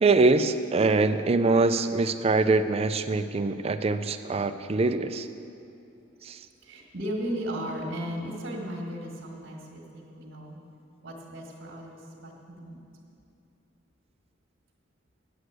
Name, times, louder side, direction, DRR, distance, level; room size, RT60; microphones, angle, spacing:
voice 1, 0.0-5.3 6.3-6.4, right 3 dB, 30° right, 9 dB, 0.4 m, -23 dB
voice 2, 6.6-10.6 11.0-12.8, equal, 65° right, -4 dB, 1.5 m, -36 dB
9.4 x 7.9 x 8.0 m, 2.6 s
head